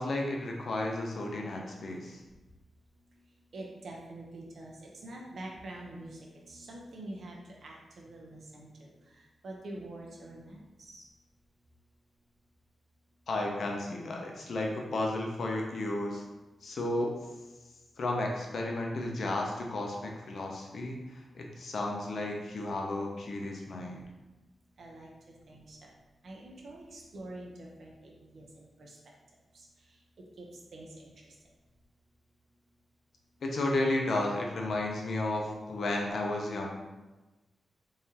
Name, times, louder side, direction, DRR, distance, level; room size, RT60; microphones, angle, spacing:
voice 1, 0.0-2.2 13.3-16.2 16.6-17.1 18.0-24.0 33.4-36.7, left 2 dB, 60° left, 0 dB, 0.6 m, -33 dB
voice 2, 3.5-11.1 24.8-25.9 26.2-29.0 29.5-30.0 30.4-30.5 30.7-31.1, right 1 dB, 60° right, -1 dB, 0.7 m, -46 dB
3.6 x 3.1 x 2.8 m, 1.1 s
wide cardioid pair, 135°, 0 cm